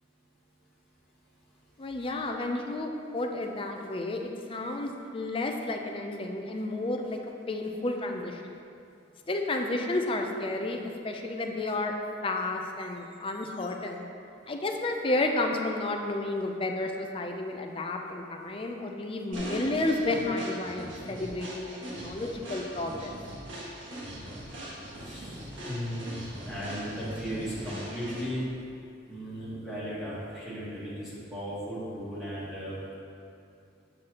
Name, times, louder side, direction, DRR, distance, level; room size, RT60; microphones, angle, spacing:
voice 1, 1.8-7.2 7.5-8.6 9.3-11.9 12.2-14.1 14.5-23.1, left 2 dB, 30° left, 3 dB, 0.5 m, -31 dB
sound 1, 19.3-28.5, equal, 75° right, 1.7 m, -41 dB
voice 2, 25.0-28.5 29.1-32.8, equal, ahead, -11 dB, 1.4 m, -36 dB
7.7 x 6.3 x 2.9 m, 2.5 s
head